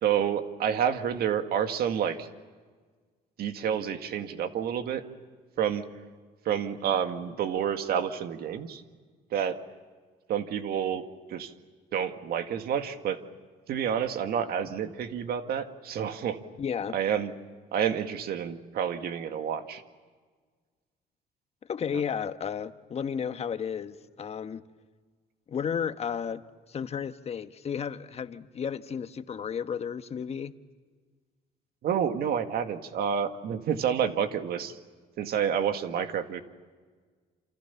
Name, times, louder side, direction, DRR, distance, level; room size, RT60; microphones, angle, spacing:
voice 1, 0.0-2.3 3.4-5.0 5.6-5.8 6.5-8.8 9.3-9.6 10.3-11.5 11.9-13.2 13.7-16.4 16.9-17.3 17.7-19.8 21.9-22.0 31.8-34.8 35.2-36.4, right 8 dB, 65° right, 7 dB, 2.0 m, -29 dB
voice 2, 16.6-16.9 21.7-24.6 25.5-26.4 26.7-30.5, left 7 dB, 40° left, 10 dB, 1.3 m, -33 dB
28.5 x 28.0 x 7.1 m, 1.5 s
cardioid pair, 110°, 17 cm